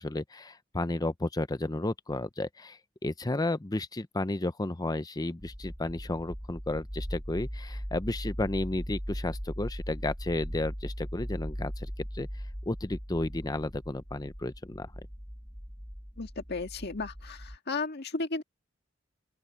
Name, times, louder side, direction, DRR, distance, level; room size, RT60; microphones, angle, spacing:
voice 1, 0.0-12.3 12.7-14.9, left 2 dB, 20° left, 0.7 m, -33 dB
sound 1, 5.4-17.6, equal, ahead, 1.7 m, -39 dB
voice 2, 16.2-18.4, left 3 dB, 55° left, 1.8 m, -34 dB
open air
head